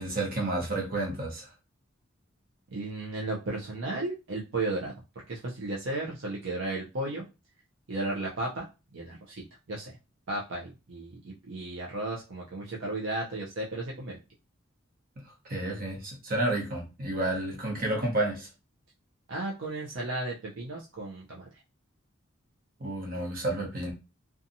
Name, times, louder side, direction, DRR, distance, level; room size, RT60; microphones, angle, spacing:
voice 1, 0.0-1.5 15.5-18.5 22.8-23.9, right 1 dB, 45° right, 0 dB, 0.9 m, -30 dB
voice 2, 2.7-4.9 5.3-7.2 7.9-8.6 8.9-9.9 10.3-14.2 19.3-21.5, right 2 dB, 65° right, -2 dB, 0.6 m, -34 dB
2.7 x 2.3 x 2.6 m, 0.28 s
head